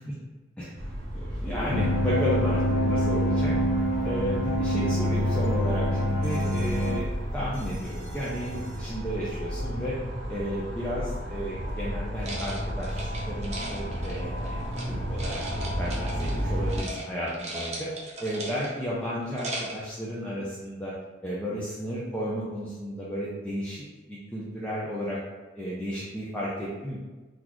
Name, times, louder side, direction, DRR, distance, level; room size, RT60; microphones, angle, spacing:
voice 1, 0.6-3.5 4.0-7.0 7.3-10.0 10.3-14.6 14.9-17.9 18.2-20.9 21.2-25.2 25.6-27.0, equal, 5° left, -8 dB, 0.5 m, -33 dB
sound 1, 0.7-16.8, equal, 80° right, 0.9 m, -33 dB
sound 2, 1.7-7.0, equal, 70° left, 0.5 m, -26 dB
sound 3, 12.2-14.9 15.2-16.4 16.7-17.0 17.3-18.8 19.2-19.9, right 1 dB, 35° right, 0.7 m, -37 dB
3.8 x 2.4 x 2.9 m, 1.2 s
head